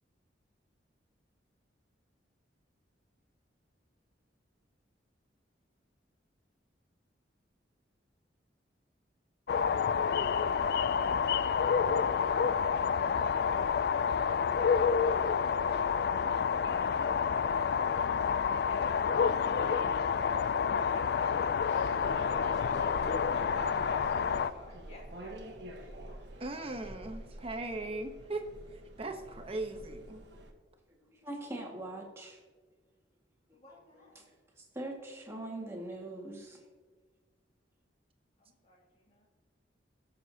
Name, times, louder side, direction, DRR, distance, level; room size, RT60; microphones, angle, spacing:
sound 1, 9.5-24.5, left 6 dB, 60° left, 0.4 m, -29 dB
voice 1, 18.6-26.3 33.5-34.3 38.4-39.3, left 1 dB, 35° left, -3 dB, 2.6 m, -48 dB
sound 2, 21.9-30.5, right 1 dB, 65° right, 1.3 m, -47 dB
voice 2, 26.4-28.5 28.7-30.2, right 2 dB, 30° right, 5 dB, 1.0 m, -39 dB
voice 3, 31.0-32.4 33.9-34.2 34.6-36.6, right 1 dB, 15° right, -2 dB, 1.9 m, -42 dB
19.0 x 6.8 x 2.8 m, 1.4 s
head